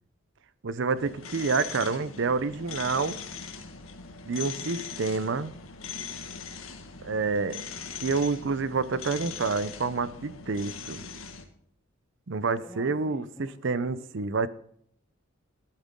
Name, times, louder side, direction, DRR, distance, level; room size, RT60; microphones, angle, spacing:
voice 1, 0.6-3.2 4.3-5.5 7.0-7.6 8.0-11.0 12.3-13.2 13.6-14.5, right 4 dB, 65° right, 15 dB, 0.6 m, -28 dB
sound 1, 0.9-11.4, left 6 dB, 90° left, 1.7 m, -40 dB
voice 2, 12.6-14.1, equal, ahead, -4 dB, 2.6 m, -47 dB
13.0 x 12.0 x 3.7 m, 0.64 s
head